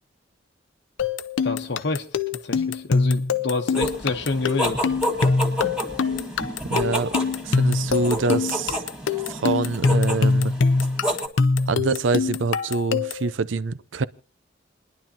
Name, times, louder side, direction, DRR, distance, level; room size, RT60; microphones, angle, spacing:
sound 1, 1.0-13.3, left 4 dB, 90° left, 0.6 m, -23 dB
voice 1, 1.4-2.1 2.4-4.8, left 3 dB, 65° left, 1.0 m, -27 dB
sound 2, 3.7-11.3, equal, 5° right, 1.7 m, -30 dB
voice 2, 6.7-7.1 7.4-8.8 9.3-10.5 11.7-14.0, right 4 dB, 80° right, 0.6 m, -25 dB
29.5 x 10.5 x 2.8 m
head